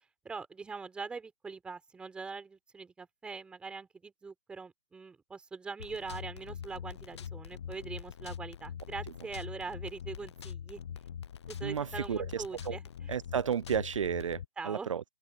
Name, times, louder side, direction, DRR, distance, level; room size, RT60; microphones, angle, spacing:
voice 1, 0.2-10.8 11.5-13.1 14.6-14.9, right 4 dB, 5° right, 4.5 m, -42 dB
sound 1, 5.8-14.5, left 8 dB, 50° left, 1.1 m, -43 dB
voice 2, 11.6-12.8 13.1-15.0, right 8 dB, 60° right, 0.6 m, -33 dB
open air
hypercardioid pair, 155°, 18 cm